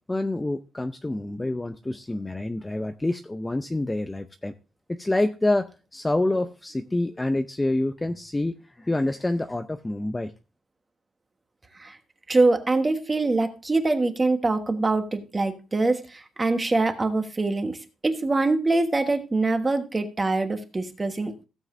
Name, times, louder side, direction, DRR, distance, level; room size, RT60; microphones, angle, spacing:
voice 1, 0.1-4.5 4.9-10.3, left 2 dB, 10° left, 7 dB, 0.5 m, -27 dB
voice 2, 12.3-17.8 18.0-21.5, right 3 dB, 20° right, 6 dB, 1.3 m, -24 dB
16.5 x 7.3 x 2.6 m, 0.31 s
cardioid pair, 140°, 0 cm